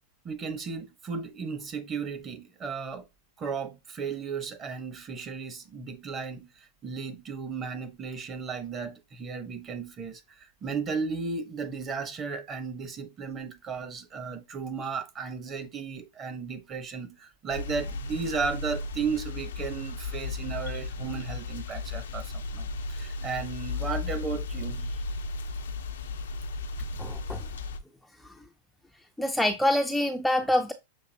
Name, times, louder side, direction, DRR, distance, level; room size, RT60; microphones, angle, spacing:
voice 1, 0.2-3.1 3.4-25.0, right 5 dB, 30° right, 1.0 m, -35 dB
sound 1, 17.5-27.8, left 3 dB, 90° left, 0.6 m, -35 dB
voice 2, 27.0-27.5 28.2-28.4 29.2-30.7, left 1 dB, ahead, 0.4 m, -26 dB
6.6 x 2.7 x 2.7 m
hypercardioid pair, 115°, 0 cm